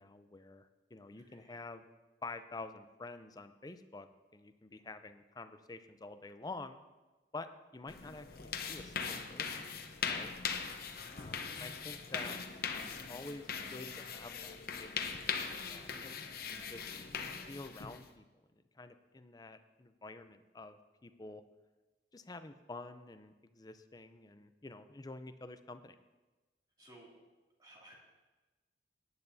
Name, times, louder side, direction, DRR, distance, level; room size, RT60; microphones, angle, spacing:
voice 1, 0.0-1.8 2.2-4.1 4.3-6.8 7.3-7.5 7.7-9.5 10.1-10.4 11.1-14.9 15.3-16.9 17.5-18.2 18.8-21.4 22.1-25.9, left 3 dB, 20° left, 10 dB, 0.5 m, -49 dB
voice 2, 1.1-1.7 10.4-11.2 26.8-27.2 27.6-27.9, right 1 dB, 25° right, -3 dB, 2.4 m, -60 dB
sound 1, 7.9-18.1, left 6 dB, 60° left, 0.9 m, -40 dB
17.5 x 9.8 x 2.7 m, 1.2 s
head